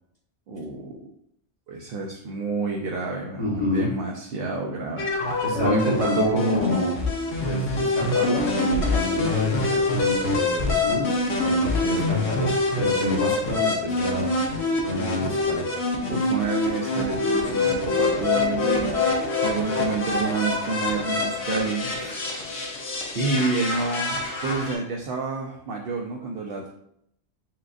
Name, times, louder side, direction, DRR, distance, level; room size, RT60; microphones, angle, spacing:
voice 1, 0.5-0.9 1.7-6.5 11.6-12.3 16.1-22.5 23.1-26.7, right 4 dB, 60° right, 0 dB, 0.7 m, -29 dB
voice 2, 3.4-3.9 5.4-7.0 7.4-11.1 11.4-14.3 14.9-15.7 18.8-19.0 22.5-22.6, left 1 dB, 35° left, -7 dB, 1.1 m, -28 dB
sound 1, 5.0-24.8, left 3 dB, 65° left, 1.1 m, -25 dB
7.4 x 2.5 x 2.5 m, 0.73 s
omnidirectional pair, 1.2 m